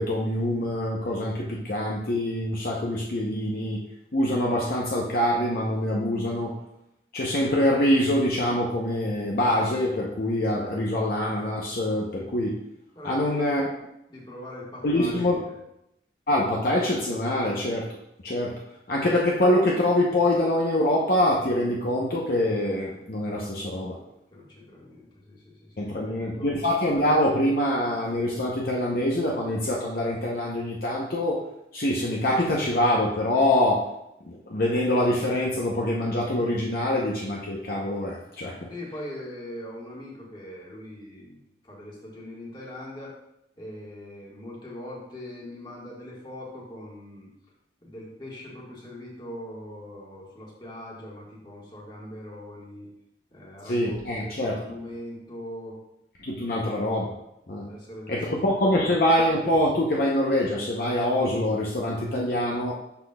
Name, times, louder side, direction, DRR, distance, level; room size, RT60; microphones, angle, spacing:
voice 1, 0.0-3.8 4.1-6.5 7.1-12.6 13.0-13.6 14.8-15.4 16.3-17.9 18.2-18.6 18.9-24.0 25.8-31.4 31.7-33.9 34.2-38.7 53.6-54.6 56.2-57.1 57.5-57.6 58.1-62.7, left 1 dB, 55° left, -3 dB, 0.7 m, -24 dB
voice 2, 12.9-13.7 14.1-15.6 24.3-26.5 38.7-41.4 41.6-43.2 43.6-47.3 47.8-52.9 53.3-55.8 56.4-56.6 57.7-58.3 58.6-59.0, left 1 dB, 25° left, -4 dB, 1.5 m, -41 dB
11.0 x 4.0 x 2.3 m, 0.84 s
head